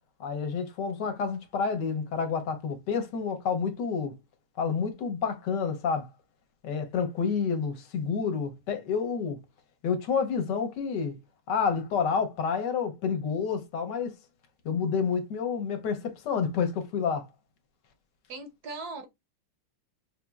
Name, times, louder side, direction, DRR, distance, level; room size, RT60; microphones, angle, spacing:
voice 1, 0.2-4.1 4.6-6.1 6.6-9.4 9.8-11.2 11.5-14.1 14.6-17.3, left 6 dB, 70° left, 1.4 m, -29 dB
voice 2, 18.3-19.1, right 3 dB, 65° right, 1.0 m, -39 dB
5.6 x 2.9 x 2.3 m
omnidirectional pair, 2.0 m